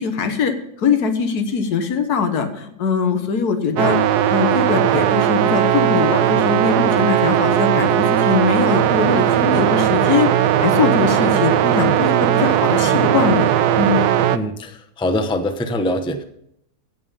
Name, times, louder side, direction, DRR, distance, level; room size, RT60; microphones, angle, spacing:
voice 1, 0.0-4.0 4.3-10.3 10.6-13.5 13.8-14.0, left 5 dB, 70° left, 7 dB, 1.7 m, -21 dB
sound 1, 3.8-14.4, right 12 dB, 75° right, 1.1 m, -17 dB
voice 2, 14.3-16.2, left 1 dB, 5° left, 8 dB, 0.4 m, -23 dB
16.0 x 5.5 x 5.5 m, 0.74 s
omnidirectional pair, 1.8 m